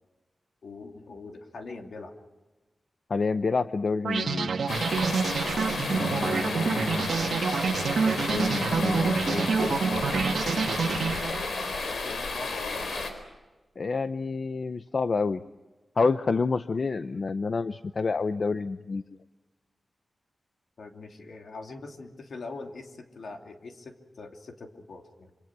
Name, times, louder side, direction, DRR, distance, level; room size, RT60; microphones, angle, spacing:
voice 1, 0.6-2.2 11.9-12.8 20.8-25.3, left 3 dB, 65° left, 3 dB, 2.9 m, -42 dB
voice 2, 3.1-4.6 5.8-7.1 8.0-9.8 13.8-15.4 16.0-19.0, left 4 dB, 50° left, 11 dB, 0.7 m, -29 dB
sound 1, 4.0-11.7, right 5 dB, 75° right, 1.7 m, -27 dB
sound 2, 4.7-13.1, left 3 dB, 85° left, 4.5 m, -32 dB
26.5 x 26.0 x 6.1 m, 1.2 s
wide cardioid pair, 145°, 0 cm